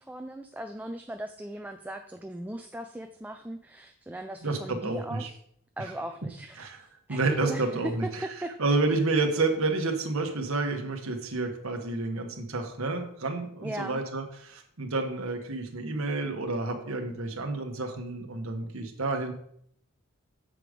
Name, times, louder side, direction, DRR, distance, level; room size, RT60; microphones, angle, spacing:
voice 1, 0.0-5.3 5.8-8.0 8.2-8.5 13.6-14.0, right 1 dB, 10° right, 6 dB, 0.4 m, -38 dB
voice 2, 4.4-5.3 6.6-6.8 7.1-8.3 8.6-19.3, right 3 dB, 75° right, 4 dB, 1.2 m, -29 dB
7.7 x 5.0 x 5.0 m, 0.68 s
head